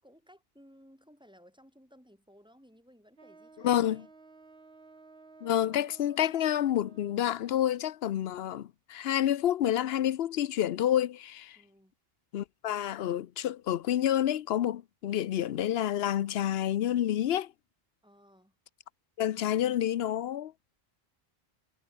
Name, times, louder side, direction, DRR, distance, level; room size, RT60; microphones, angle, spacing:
voice 1, 0.0-4.1 11.6-11.9 18.0-18.5, equal, 5° right, 6.2 m, -58 dB
Wind instrument woodwind instrument, 3.2-7.6, right 3 dB, 80° right, 2.6 m, -55 dB
voice 2, 3.6-4.0 5.4-11.6 12.3-17.5 19.2-20.5, left 11 dB, 75° left, 0.9 m, -29 dB
omnidirectional pair, 1.0 m